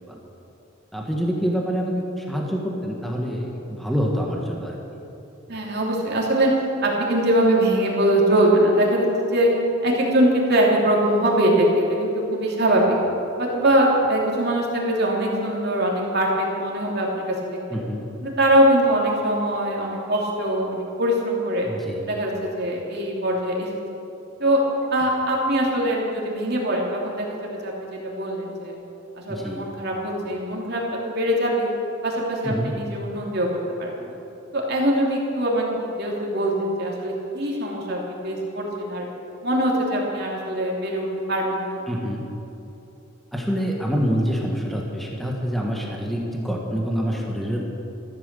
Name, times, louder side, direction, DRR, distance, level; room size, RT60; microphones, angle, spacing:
voice 1, 0.9-4.8 12.8-13.0 17.7-18.0 21.6-22.0 29.3-29.6 32.4-32.7 41.9-42.2 43.3-47.6, equal, ahead, -1 dB, 1.6 m, -26 dB
voice 2, 5.5-6.5 6.8-9.5 9.8-13.0 13.4-17.6 18.2-21.7 22.1-23.7 24.4-24.6 24.9-28.7 29.2-31.7 32.0-33.5 33.8-34.1 34.5-35.7 36.0-39.1 39.4-41.8, right 1 dB, 50° right, -2 dB, 3.0 m, -22 dB
14.5 x 12.5 x 6.9 m, 2.9 s
head